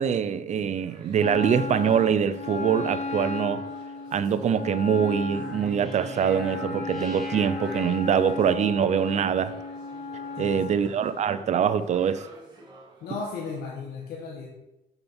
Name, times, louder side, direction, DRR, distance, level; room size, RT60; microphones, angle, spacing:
voice 1, 0.0-3.6 4.1-9.6 10.4-12.3, right 8 dB, 45° right, 0.6 m, -24 dB
sound 1, 0.7-13.6, right 2 dB, 25° right, 2.4 m, -49 dB
Wind instrument woodwind instrument, 1.2-10.8, left 4 dB, 45° left, 0.8 m, -35 dB
sound 2, 5.3-8.6, right 2 dB, ahead, 2.2 m, -41 dB
voice 2, 10.3-10.8 13.0-14.5, left 4 dB, 65° left, 1.6 m, -36 dB
7.1 x 6.8 x 4.4 m
cardioid pair, 110°, 17 cm